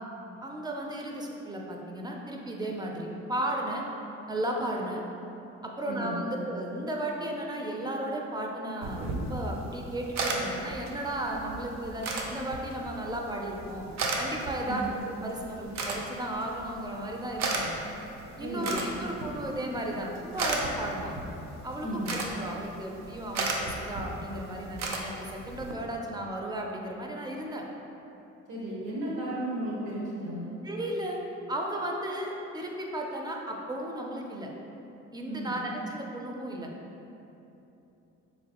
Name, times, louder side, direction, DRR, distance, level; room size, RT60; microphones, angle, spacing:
voice 1, 0.4-3.8 4.3-5.0 5.6-13.9 14.2-17.7 18.4-21.1 21.6-27.6 30.6-31.2 31.5-34.5 35.1-36.7, right 1 dB, 15° right, 0 dB, 0.4 m, -34 dB
voice 2, 5.9-6.2 14.7-14.8 18.4-18.8 21.8-22.1 28.5-30.5 35.3-35.5, right 1 dB, 80° right, -6 dB, 1.2 m, -34 dB
sound 1, 8.8-25.7, right 2 dB, 65° right, 0.5 m, -36 dB
3.7 x 3.0 x 2.8 m, 2.9 s
cardioid pair, 90°, 30 cm